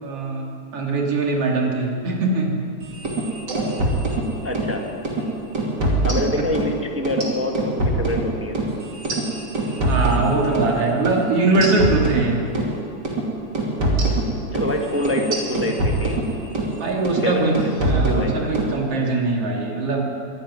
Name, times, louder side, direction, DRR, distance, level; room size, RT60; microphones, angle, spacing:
voice 1, 0.0-2.6 9.9-12.4 14.0-14.2 16.8-17.5 17.8-20.1, right 3 dB, 50° right, 0 dB, 3.7 m, -22 dB
sound 1, 2.9-4.7 5.1-5.2 5.6-6.7 7.1-10.7 11.1-11.2 11.6-12.7 13.1-13.2 13.6-16.7 17.1-17.3 17.6-18.7, right 1 dB, 35° right, 3.2 m, -23 dB
voice 2, 4.4-4.8 6.0-8.6 14.3-16.2 17.2-17.4 18.1-18.3, left 1 dB, 20° right, 2 dB, 0.4 m, -26 dB
24.0 x 11.5 x 9.6 m, 2.6 s
omnidirectional pair, 3.5 m